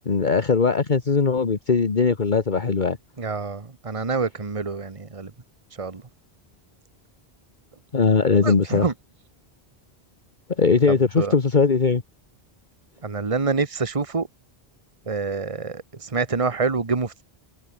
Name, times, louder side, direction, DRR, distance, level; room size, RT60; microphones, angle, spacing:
voice 1, 0.0-3.0 7.9-8.9 10.6-12.0, left 5 dB, 50° left, 1.5 m, -20 dB
voice 2, 3.2-5.3 5.8-6.0 8.4-8.9 10.9-11.3 13.0-14.3 15.1-17.2, right 4 dB, 30° right, 1.4 m, -26 dB
omnidirectional pair, 1.1 m